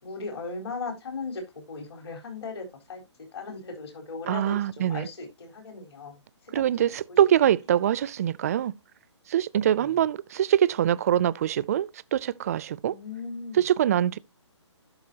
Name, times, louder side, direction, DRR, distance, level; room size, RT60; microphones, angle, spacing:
voice 1, 0.0-3.0 3.3-6.2 6.8-7.2 9.7-9.9 12.9-13.6, left 4 dB, 60° left, 4.2 m, -38 dB
voice 2, 4.3-5.1 6.5-8.7 9.3-13.0 13.5-14.2, right 10 dB, 30° right, 0.3 m, -24 dB
12.0 x 5.8 x 2.8 m
hypercardioid pair, 150°, 15 cm